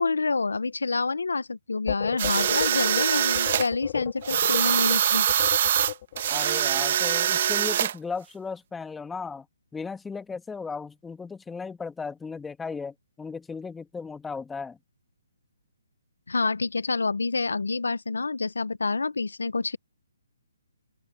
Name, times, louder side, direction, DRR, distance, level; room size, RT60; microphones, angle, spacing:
voice 1, 0.0-5.3 16.3-19.8, left 3 dB, 85° left, 1.0 m, -27 dB
sound 1, 1.9-6.3, left 12 dB, 40° left, 3.5 m, -34 dB
sound 2, 2.2-3.7 4.2-7.9, right 10 dB, 45° right, 1.9 m, -24 dB
voice 2, 6.3-9.5 9.7-14.8, left 5 dB, 5° left, 2.0 m, -36 dB
open air
hypercardioid pair, 150°, 0 cm